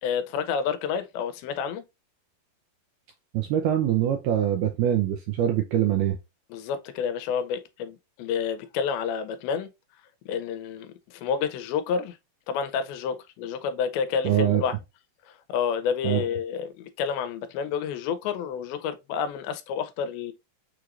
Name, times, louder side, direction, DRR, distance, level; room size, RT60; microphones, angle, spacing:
voice 1, 0.0-1.8 6.5-9.7 10.3-12.2 12.5-14.8 15.5-20.3, left 7 dB, 85° left, 2.5 m, -29 dB
voice 2, 3.3-6.2 14.2-14.6 16.0-16.2, right 11 dB, 85° right, 1.8 m, -23 dB
6.3 x 2.9 x 2.4 m
omnidirectional pair, 4.2 m